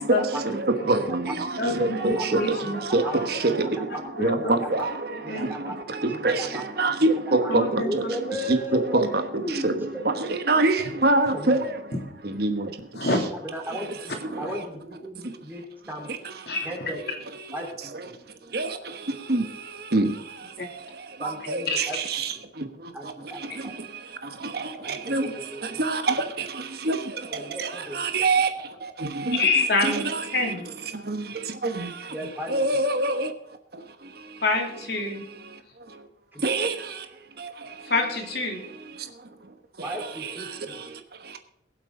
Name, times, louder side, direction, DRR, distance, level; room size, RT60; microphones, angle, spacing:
voice 1, 0.0-3.7 4.0-8.0 8.3-12.0 12.2-13.3 13.7-14.7 15.2-15.4 16.1-16.7 17.3-18.1 18.5-33.3 33.7-34.4 35.0-36.1 36.4-37.9 38.5-41.4, right 2 dB, 55° right, 1.2 m, -27 dB
voice 2, 1.6-2.8 4.2-4.4 5.3-5.5 7.5-7.9 13.0-13.2 16.5-16.7 21.7-21.8 29.3-30.7 34.4-35.2 37.9-38.6, left 3 dB, 60° left, 3.1 m, -26 dB
voice 3, 2.6-3.1 3.5-4.0 4.4-4.9 5.2-5.7 6.1-6.6 7.3-7.5 7.8-9.1 9.5-10.3 11.3-11.6 13.3-14.0 14.4-16.1 16.6-17.0 17.5-17.7 18.0-18.2 21.2-22.0 22.9-23.7 24.8-25.8 27.3-28.0 32.1-32.6 36.3-36.4 39.8-40.8, equal, 10° right, 4.0 m, -35 dB
23.0 x 7.9 x 3.8 m
head